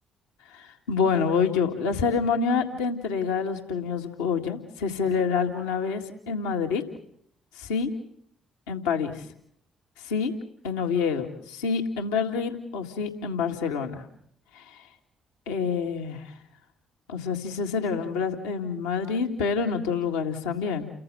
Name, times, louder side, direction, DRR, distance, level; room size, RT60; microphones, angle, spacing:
voice 1, 0.5-6.8 7.6-7.9 8.7-9.2 10.0-10.3 10.6-14.0 14.5-14.8 15.5-16.3 17.1-20.9, left 5 dB, 80° left, 3 dB, 1.8 m, -27 dB
29.5 x 14.5 x 7.8 m, 0.66 s
hypercardioid pair, 45°, 0 cm